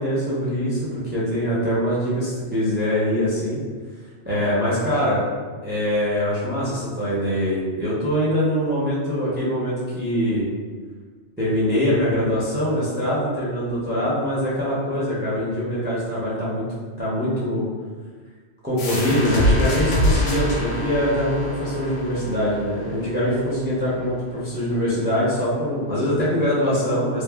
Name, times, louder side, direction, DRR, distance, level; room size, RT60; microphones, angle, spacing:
voice 1, 0.0-3.6 4.2-5.2 5.6-10.5 11.4-16.7 17.0-17.6 18.6-27.2, equal, 15° right, -8 dB, 0.3 m, -23 dB
sound 1, 18.8-24.2, left 1 dB, 80° left, 1.0 m, -25 dB
3.0 x 2.1 x 2.2 m, 1.5 s
omnidirectional pair, 1.3 m